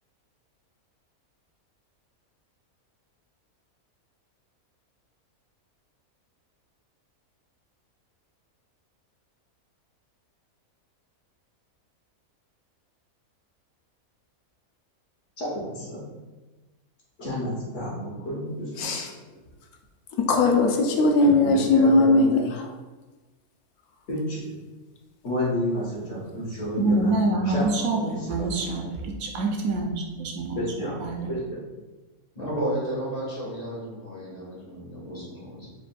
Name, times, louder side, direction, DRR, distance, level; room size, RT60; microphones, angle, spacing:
voice 1, 15.4-16.2 17.2-18.9 21.2-22.5 24.1-24.5 25.2-27.1 27.5-28.0 28.3-28.9 30.5-31.0 31.2-31.6, equal, 60° left, 1.5 m, -31 dB
voice 2, 18.8-19.1 20.2-22.6 26.8-27.0, left 2 dB, 85° left, 1.1 m, -20 dB
voice 3, 26.8-31.3, right 3 dB, 75° right, 1.0 m, -26 dB
voice 4, 32.3-35.7, right 1 dB, 30° left, 1.3 m, -32 dB
4.8 x 3.4 x 2.3 m
omnidirectional pair, 1.5 m